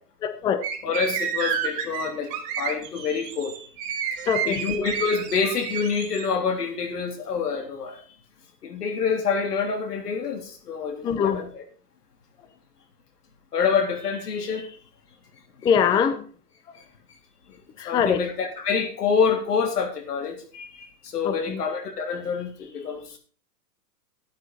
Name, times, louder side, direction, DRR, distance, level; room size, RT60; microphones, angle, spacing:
voice 1, 0.2-0.6 4.3-4.6 11.0-11.4 15.6-16.2 17.8-18.2 21.2-21.6, left 7 dB, 10° left, 0.5 m, -23 dB
sound 1, 0.6-6.3, right 8 dB, 35° right, 3.0 m, -30 dB
voice 2, 0.8-2.3 2.6-3.5 4.5-8.0 8.6-11.6 13.5-14.7 17.9-23.2, left 5 dB, 80° left, 3.5 m, -27 dB
13.0 x 9.6 x 4.2 m
hypercardioid pair, 130°, 46 cm